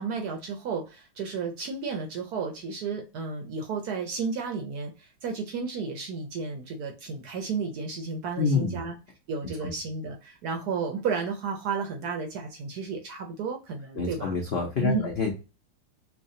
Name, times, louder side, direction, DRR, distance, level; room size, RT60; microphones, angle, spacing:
voice 1, 0.0-8.9 9.3-14.4 14.8-15.1, right 5 dB, 65° right, 3 dB, 1.0 m, -32 dB
voice 2, 8.4-8.8 9.6-9.7 14.0-15.3, left 5 dB, 65° left, -1 dB, 0.6 m, -27 dB
5.6 x 2.2 x 2.7 m, 0.31 s
omnidirectional pair, 2.1 m